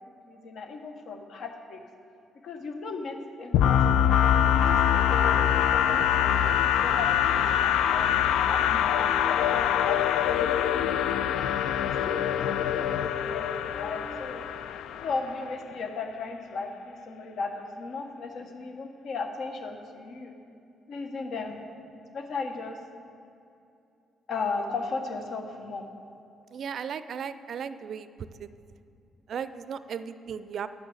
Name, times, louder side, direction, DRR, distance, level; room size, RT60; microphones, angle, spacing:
voice 1, 0.2-1.8 2.4-4.6 4.9-10.9 11.2-11.5 11.8-20.3 20.9-21.6 22.1-22.8 24.3-25.8, left 4 dB, 65° left, 4 dB, 1.3 m, -37 dB
sound 1, 3.5-15.3, left 9 dB, 80° left, 0.3 m, -24 dB
sound 2, 8.9-14.2, equal, 30° left, 2.5 m, -44 dB
voice 2, 26.5-28.5 29.3-30.7, right 7 dB, 60° right, 12 dB, 0.4 m, -36 dB
10.5 x 6.2 x 7.9 m, 2.6 s
cardioid pair, 90°, 0 cm